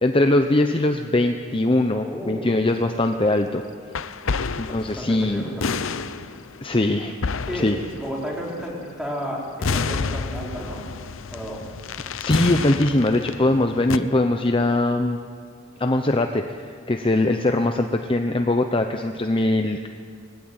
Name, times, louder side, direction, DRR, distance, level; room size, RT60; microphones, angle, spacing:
voice 1, 0.0-3.6 4.6-5.5 6.6-7.1 7.5-7.8 12.2-15.2 15.8-19.9, left 2 dB, 25° left, 6 dB, 0.8 m, -21 dB
voice 2, 2.1-2.5 4.3-6.4 7.4-7.7 8.0-10.9 11.3-11.6, equal, 5° right, -4 dB, 4.9 m, -33 dB
sound 1, 2.8-3.0 3.9-8.7 9.4-14.0, left 4 dB, 70° left, 0.7 m, -29 dB
21.5 x 16.5 x 9.5 m, 2.1 s
head